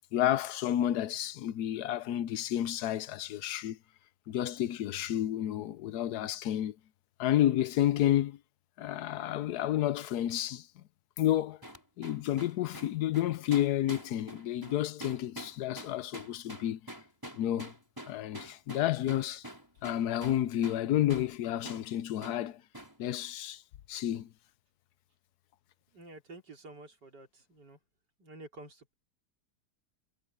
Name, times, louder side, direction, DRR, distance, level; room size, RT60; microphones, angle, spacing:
voice 1, 0.1-3.8 4.3-6.7 7.2-8.4 8.8-10.7 11.2-11.6 12.0-16.8 17.4-17.7 18.1-19.5 19.8-22.6 23.0-23.6 23.9-24.3, left 12 dB, 75° left, 1.2 m, -30 dB
sound 1, 11.6-20.8 21.1-21.3 21.6-21.9 22.2-22.4 22.7-23.0, right 1 dB, 10° right, 6.2 m, -45 dB
voice 2, 25.9-27.8 28.2-28.9, right 2 dB, 90° right, 4.3 m, -50 dB
omnidirectional pair, 1.8 m